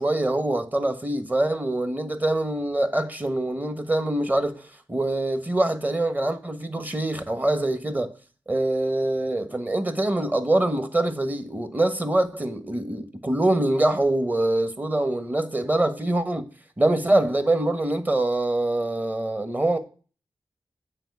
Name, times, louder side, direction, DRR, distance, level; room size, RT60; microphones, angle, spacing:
voice 1, 0.0-8.1 8.5-16.5 16.8-19.8, right 1 dB, 20° right, 1.2 m, -24 dB
9.0 x 4.1 x 7.0 m
wide cardioid pair, 75°, 8 cm